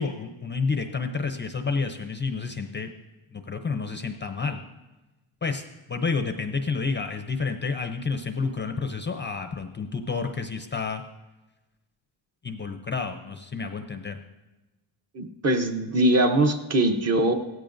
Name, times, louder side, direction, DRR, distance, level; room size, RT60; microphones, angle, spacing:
voice 1, 0.0-2.9 3.3-4.6 5.4-11.0 12.4-14.2, left 4 dB, 25° left, 6 dB, 0.5 m, -30 dB
voice 2, 15.1-17.3, right 1 dB, 30° right, 5 dB, 0.9 m, -22 dB
17.0 x 14.0 x 2.6 m, 1.1 s
cardioid pair, 135°, 49 cm